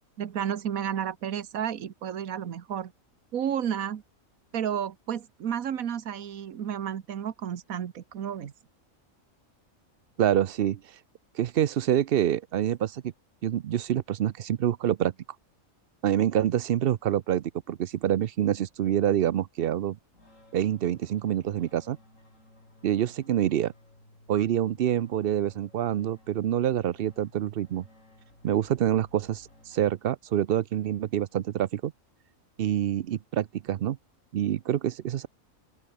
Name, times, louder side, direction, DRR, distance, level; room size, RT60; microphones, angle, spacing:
voice 1, 0.2-2.9 3.3-4.0 4.5-8.5, right 9 dB, 80° right, 1.6 m, -32 dB
voice 2, 10.2-10.8 11.3-13.0 13.4-15.1 16.0-20.0 20.5-22.0 22.8-23.7 24.3-27.9 28.4-31.9 32.6-34.0 34.3-35.3, right 11 dB, 60° right, 0.6 m, -26 dB
sound 1, 20.1-30.4, left 1 dB, 65° left, 8.0 m, -57 dB
open air
omnidirectional pair, 1.4 m